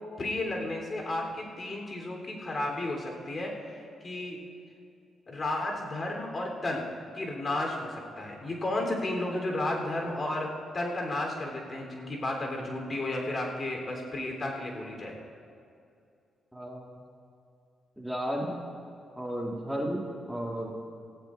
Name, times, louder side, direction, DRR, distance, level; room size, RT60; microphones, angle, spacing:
voice 1, 0.2-4.5 5.3-6.9 7.1-15.2, left 2 dB, 45° left, 0 dB, 3.4 m, -33 dB
voice 2, 16.5-16.9 18.0-18.6 19.2-20.7, equal, 5° right, -1 dB, 1.8 m, -33 dB
18.5 x 14.0 x 2.5 m, 2.5 s
supercardioid pair, 50°, 0 cm